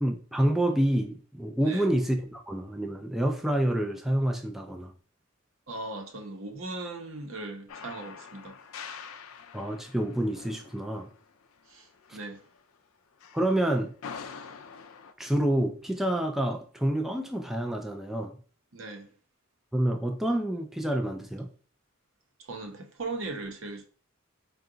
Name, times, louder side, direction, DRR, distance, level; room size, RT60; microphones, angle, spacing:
voice 1, 0.0-4.9 9.5-11.1 12.1-12.2 13.3-13.9 15.2-18.4 19.7-21.5, right 1 dB, ahead, 0.3 m, -28 dB
voice 2, 1.6-1.9 5.7-8.6 11.7-12.4 18.7-19.1 22.4-23.8, right 2 dB, 70° right, 0.8 m, -38 dB
sound 1, 7.7-12.7 13.2-15.1, left 6 dB, 80° left, 0.4 m, -45 dB
4.6 x 2.3 x 3.8 m
head